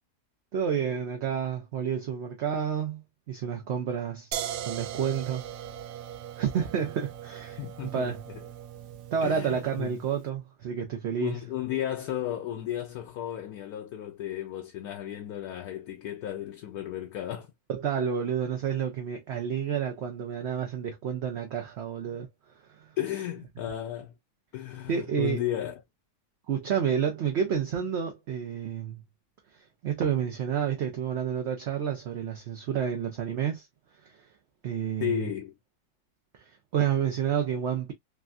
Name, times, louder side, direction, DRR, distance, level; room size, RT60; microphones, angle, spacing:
voice 1, 0.5-4.3 4.7-5.5 6.4-8.2 9.1-11.4 17.7-22.3 22.7-22.9 24.9-25.4 26.5-29.0 29.8-33.6 34.0-34.2 34.6-35.3 36.7-37.9, right 8 dB, 60° right, 0.7 m, -30 dB
sound 1, 4.3-10.1, right 10 dB, 80° right, 1.1 m, -39 dB
voice 2, 7.6-8.1 9.2-10.0 11.2-17.5 23.0-24.1 24.5-25.8 35.0-35.5, left 11 dB, 75° left, 1.0 m, -34 dB
3.3 x 2.6 x 2.3 m
omnidirectional pair, 1.7 m